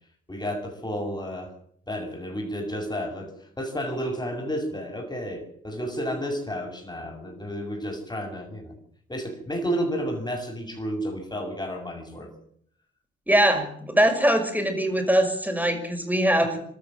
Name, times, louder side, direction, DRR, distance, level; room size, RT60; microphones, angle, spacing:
voice 1, 0.3-1.5 1.9-3.3 3.6-8.8 9.1-12.3, equal, 15° left, 2 dB, 6.9 m, -31 dB
voice 2, 13.3-16.6, right 1 dB, 5° right, 5 dB, 6.0 m, -22 dB
26.5 x 13.0 x 7.6 m, 0.64 s
hypercardioid pair, 40°, 30 cm